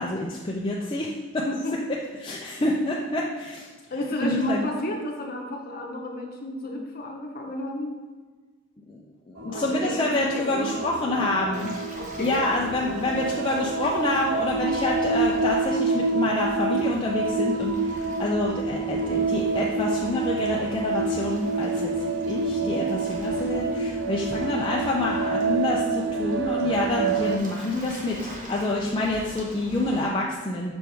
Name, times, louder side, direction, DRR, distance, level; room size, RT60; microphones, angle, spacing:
voice 1, 0.0-1.5 2.2-3.7 4.2-4.7 8.9-9.0 9.3-11.7 12.2-30.7, left 2 dB, 25° left, -3 dB, 0.4 m, -27 dB
voice 2, 1.5-1.8 3.9-7.9 9.5-10.8 11.9-12.5 22.5-22.8, left 1 dB, 45° left, 0 dB, 0.9 m, -32 dB
sound 1, 9.4-27.4, right 4 dB, 55° right, 0.4 m, -28 dB
Waves surf, 11.5-30.0, equal, 35° right, 1.0 m, -40 dB
6.2 x 4.6 x 3.4 m, 1.4 s
head